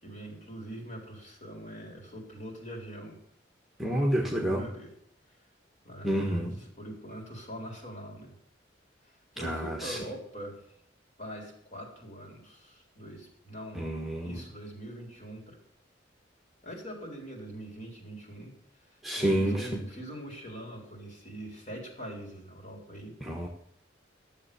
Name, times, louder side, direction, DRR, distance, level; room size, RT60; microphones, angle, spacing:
voice 1, 0.0-3.2 4.0-4.9 5.8-6.5 6.8-8.3 9.3-10.6 11.2-13.8 14.2-15.6 16.6-18.5 19.2-23.1, right 1 dB, 40° left, 0 dB, 4.0 m, -43 dB
voice 2, 3.8-4.7 6.0-6.6 9.4-10.0 13.7-14.4 19.0-19.8 23.2-23.5, right 1 dB, ahead, 0 dB, 1.5 m, -29 dB
13.5 x 7.5 x 7.0 m, 0.74 s
head